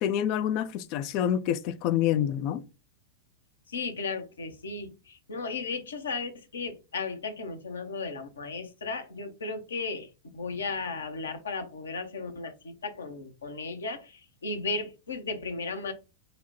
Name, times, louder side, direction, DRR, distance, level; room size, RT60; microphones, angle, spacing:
voice 1, 0.0-2.6, left 10 dB, 45° left, 0.3 m, -27 dB
voice 2, 3.7-4.9 5.3-10.1 10.3-14.0 14.4-15.9, left 4 dB, 70° left, 0.7 m, -35 dB
4.0 x 2.1 x 4.2 m
figure-of-eight pair, 90°, 0 cm